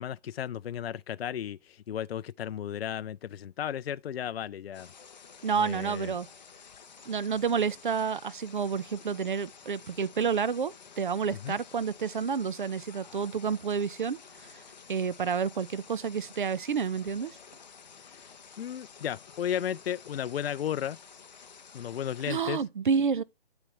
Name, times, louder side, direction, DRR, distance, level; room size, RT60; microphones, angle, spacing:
voice 1, 0.0-4.9 5.6-6.1 11.4-11.6 18.0-18.3 18.6-21.0 21.7-22.6, left 9 dB, 70° left, 0.4 m, -34 dB
sound 1, 4.7-22.4, left 6 dB, 45° left, 0.8 m, -51 dB
voice 2, 5.4-6.3 7.1-14.2 14.9-17.3 22.3-23.2, right 6 dB, 55° right, 0.7 m, -29 dB
13.0 x 4.3 x 3.3 m
hypercardioid pair, 170°, 31 cm